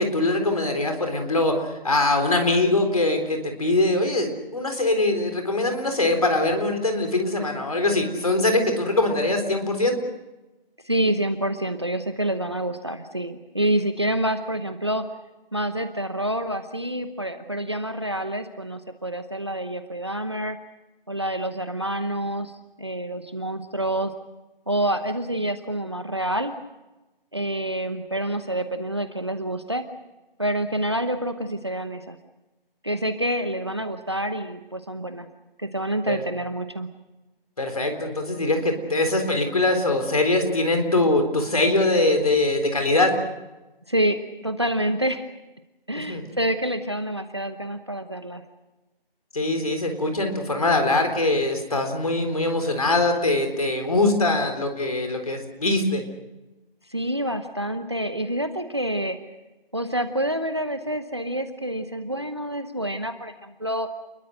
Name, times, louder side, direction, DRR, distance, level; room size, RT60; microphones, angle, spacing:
voice 1, 0.0-10.0 36.1-36.2 37.6-43.1 46.1-46.2 49.3-56.0, left 2 dB, 40° left, 5 dB, 4.0 m, -22 dB
voice 2, 10.8-15.1 15.5-20.6 21.1-22.5 22.8-24.1 24.7-26.5 27.3-29.8 30.4-32.2 32.8-35.3 35.6-36.9 43.9-45.3 45.9-48.4 56.9-59.2 59.7-63.9, right 1 dB, 30° right, 10 dB, 0.9 m, -27 dB
29.5 x 22.0 x 6.5 m, 1.1 s
figure-of-eight pair, 175°, 29 cm